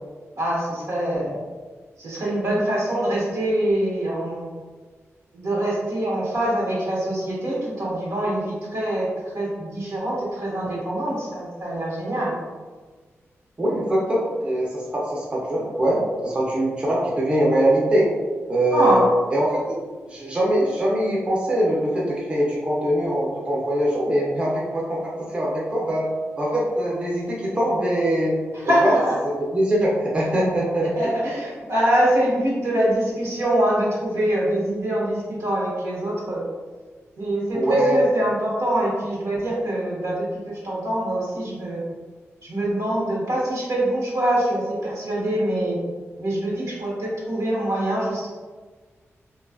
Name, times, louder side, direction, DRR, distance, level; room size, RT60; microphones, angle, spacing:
voice 1, 0.4-1.4 2.0-4.5 5.3-9.1 9.3-12.3 18.7-19.0 28.5-29.1 31.0-36.4 37.2-41.8 42.4-45.8 46.2-48.3, right 1 dB, 85° right, -6 dB, 1.0 m, -24 dB
voice 2, 13.6-18.1 18.5-19.0 19.3-19.8 20.1-25.0 25.3-26.1 26.4-28.4 28.6-28.9 29.5-31.1 37.5-38.0, right 1 dB, 20° right, -4 dB, 0.5 m, -22 dB
2.5 x 2.3 x 2.3 m, 1.4 s
wide cardioid pair, 125°, 5 cm